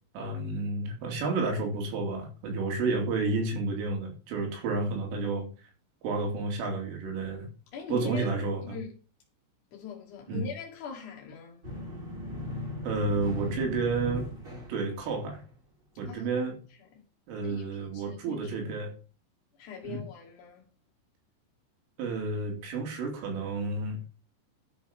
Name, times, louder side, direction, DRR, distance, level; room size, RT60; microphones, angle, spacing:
voice 1, 0.2-5.5 6.0-7.5 7.9-8.8 10.3-10.5 12.9-14.3 14.7-15.4 16.0-16.6 17.3-18.9 19.8-20.0 22.0-24.0, right 3 dB, 75° right, 5.2 m, -31 dB
voice 2, 7.7-8.3 8.6-8.9 9.7-11.6 16.1-16.3 17.4-17.6 17.9-18.5 19.6-20.7, left 6 dB, 70° left, 1.8 m, -41 dB
sound 1, 11.6-15.5, left 1 dB, 20° right, 4.5 m, -38 dB
11.5 x 5.9 x 5.1 m
omnidirectional pair, 5.8 m